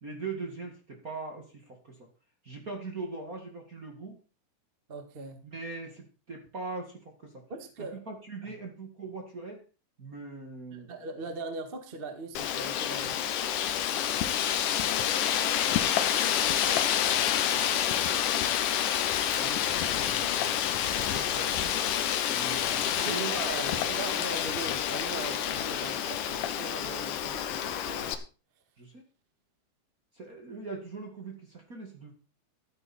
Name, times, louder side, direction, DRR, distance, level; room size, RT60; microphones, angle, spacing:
voice 1, 0.0-2.1 2.4-4.2 5.4-7.4 7.8-9.6 10.0-10.9 17.1-17.4 17.7-18.2 19.3-20.9 22.3-23.3 23.7-24.3 28.8-29.0 30.1-32.1, right 3 dB, 35° right, 3 dB, 1.5 m, -41 dB
voice 2, 4.9-5.4 7.5-8.0 8.4-8.5 10.7-13.2 21.1-21.8 23.0-28.2, right 3 dB, 50° right, 6 dB, 0.6 m, -40 dB
Wind, 12.4-28.2, left 10 dB, 70° left, 2.2 m, -28 dB
14.5 x 9.5 x 4.4 m, 0.35 s
omnidirectional pair, 4.6 m